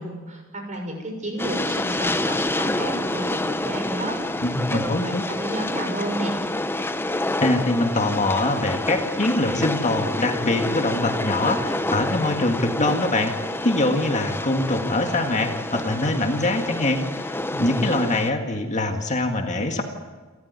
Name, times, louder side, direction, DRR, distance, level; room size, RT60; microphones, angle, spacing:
voice 1, 0.0-6.4, right 1 dB, 35° right, 3 dB, 6.4 m, -31 dB
Train, 1.4-18.3, left 2 dB, 10° left, 0.8 m, -28 dB
voice 2, 4.4-5.2 7.4-13.3 13.6-19.8, left 2 dB, 35° left, 4 dB, 1.9 m, -23 dB
29.5 x 14.0 x 9.5 m, 1.3 s
head